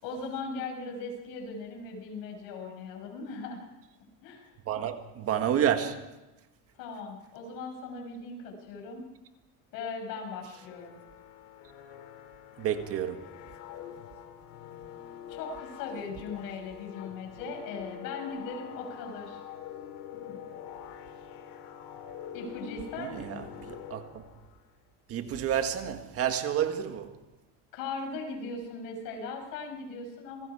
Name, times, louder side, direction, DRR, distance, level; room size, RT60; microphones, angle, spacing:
voice 1, 0.0-3.7 4.2-4.5 6.8-9.1 9.7-10.9 15.3-19.4 20.1-20.5 22.3-23.5 27.7-30.5, left 4 dB, 70° left, 6.1 m, -39 dB
voice 2, 4.7-6.0 12.6-13.2 23.0-24.2 25.1-27.1, right 9 dB, 40° right, 1.6 m, -30 dB
sound 1, 10.5-24.6, left 9 dB, 90° left, 2.5 m, -45 dB
27.0 x 20.5 x 4.8 m
cardioid pair, 155°, 34 cm